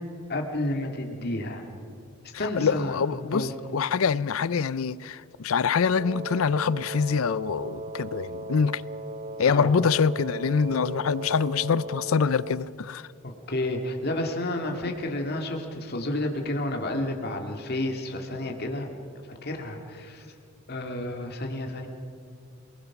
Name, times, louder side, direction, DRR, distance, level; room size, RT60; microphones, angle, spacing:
voice 1, 0.3-1.6 2.4-3.0 3.3-3.5 9.4-9.7 13.2-18.9 19.4-20.2 20.7-21.9, left 1 dB, 50° left, 2.1 m, -30 dB
voice 2, 2.4-8.8 9.4-13.0, left 6 dB, 75° left, 0.5 m, -25 dB
Wind instrument woodwind instrument, 5.9-12.7, right 2 dB, 35° right, 0.5 m, -37 dB
28.0 x 19.5 x 6.0 m
head